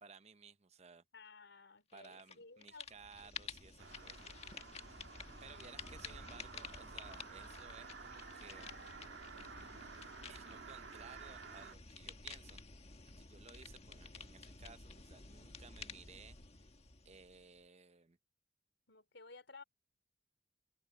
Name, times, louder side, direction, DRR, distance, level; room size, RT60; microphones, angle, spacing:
voice 1, 0.0-1.0 1.9-4.3 5.4-8.7 9.8-10.0 10.3-12.6 13.2-16.6 17.0-18.2, right 5 dB, 35° right, 0.9 m, -58 dB
voice 2, 1.1-2.9 3.2-3.5 18.9-19.6, left 3 dB, 80° left, 4.2 m, -56 dB
sound 1, 2.0-2.4 2.6-17.6, left 4 dB, 35° left, 1.6 m, -52 dB
sound 2, 3.8-11.8, right 5 dB, 85° right, 1.8 m, -53 dB
open air
head